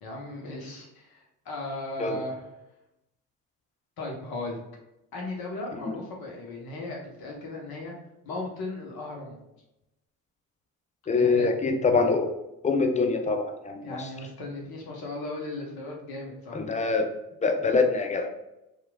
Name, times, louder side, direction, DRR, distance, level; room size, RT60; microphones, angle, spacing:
voice 1, 0.0-2.5 4.0-4.6 5.1-7.9 8.2-9.4 11.1-11.5 13.8-16.6, left 2 dB, 60° left, -1 dB, 0.9 m, -36 dB
voice 2, 11.1-12.3 12.6-13.9 16.5-17.1 17.4-18.3, left 4 dB, 20° left, 5 dB, 0.4 m, -24 dB
2.9 x 2.4 x 2.2 m, 0.89 s
hypercardioid pair, 60°, 41 cm